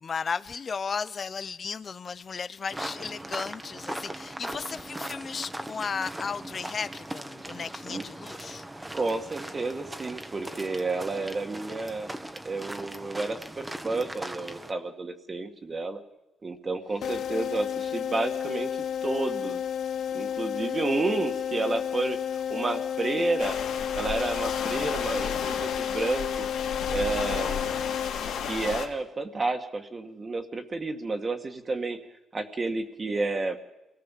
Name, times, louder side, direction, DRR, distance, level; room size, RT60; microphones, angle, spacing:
voice 1, 0.0-8.7, left 5 dB, 40° left, 0.7 m, -35 dB
sound 1, 2.7-14.7, right 1 dB, 10° right, 1.5 m, -39 dB
voice 2, 8.9-12.1 12.4-16.0 16.4-19.6 20.1-23.6 23.9-26.5 26.9-27.7 28.5-32.0 32.3-33.6, right 3 dB, 30° right, 2.2 m, -31 dB
sound 2, 17.0-28.7, left 8 dB, 65° left, 1.0 m, -32 dB
sound 3, 23.4-28.9, left 7 dB, 85° left, 3.0 m, -33 dB
28.5 x 18.5 x 7.6 m
cardioid pair, 90°, 0 cm